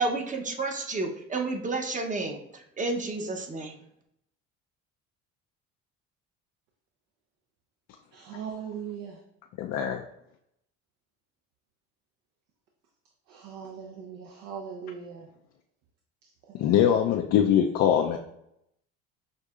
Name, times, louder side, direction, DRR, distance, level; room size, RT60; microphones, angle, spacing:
voice 1, 0.0-3.7, right 3 dB, 25° right, 0.7 m, -31 dB
voice 2, 8.1-9.2 13.3-15.3 16.5-16.7, right 7 dB, 70° right, 0.7 m, -39 dB
voice 3, 9.6-10.0 16.5-18.2, left 9 dB, 60° left, 0.5 m, -22 dB
6.4 x 2.7 x 2.4 m
supercardioid pair, 95°, 30 cm